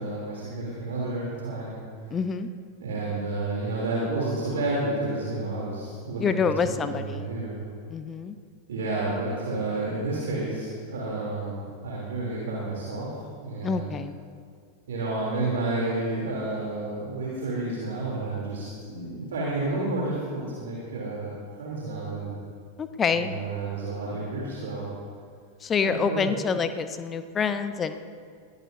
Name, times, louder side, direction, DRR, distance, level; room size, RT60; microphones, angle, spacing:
voice 1, 0.0-1.8 2.8-7.6 8.7-13.1 13.4-13.9 14.9-22.4 23.1-24.9 25.8-26.3, right 2 dB, 60° right, -5 dB, 3.1 m, -30 dB
voice 2, 2.1-2.5 6.2-7.3 7.9-8.4 13.6-14.2 22.8-23.4 25.6-28.0, left 6 dB, 20° left, 10 dB, 0.7 m, -27 dB
21.5 x 15.5 x 2.7 m, 2.1 s
figure-of-eight pair, 90°, 0 cm